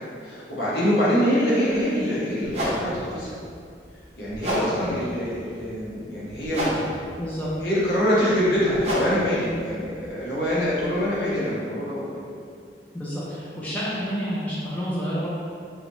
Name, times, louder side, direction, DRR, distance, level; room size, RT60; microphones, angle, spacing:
voice 1, 0.2-3.3 4.2-6.7 7.6-12.2, equal, 65° left, -8 dB, 1.0 m, -24 dB
sound 1, 1.7-1.8 2.4-11.3, right 1 dB, 35° right, 0.6 m, -32 dB
voice 2, 7.2-7.5 12.9-15.3, equal, 10° left, -9 dB, 0.4 m, -29 dB
3.7 x 2.1 x 3.0 m, 2.3 s
head